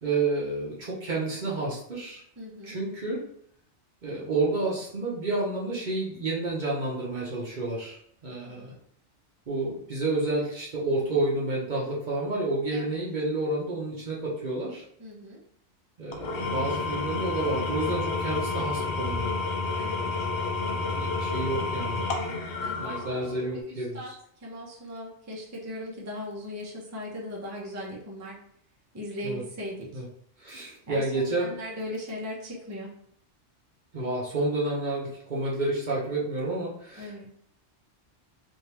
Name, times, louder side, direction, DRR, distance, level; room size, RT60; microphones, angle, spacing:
voice 1, 0.0-2.2 2.6-3.2 4.0-8.7 9.5-14.8 16.0-19.3 21.0-22.0 22.8-24.1 29.2-29.4 29.9-30.0 30.4-31.5 33.9-37.3, right 2 dB, 45° right, -5 dB, 0.8 m, -30 dB
voice 2, 2.4-2.8 8.4-8.8 12.7-12.9 15.0-15.4 19.8-20.3 22.6-23.0 23.4-24.1 24.4-28.3 28.9-30.0 30.9-32.9 37.0-37.3, left 1 dB, 20° right, -3 dB, 0.6 m, -38 dB
Engine / Tools, 16.1-23.6, left 3 dB, 70° left, 0.9 m, -30 dB
3.4 x 2.7 x 2.9 m, 0.65 s
omnidirectional pair, 1.2 m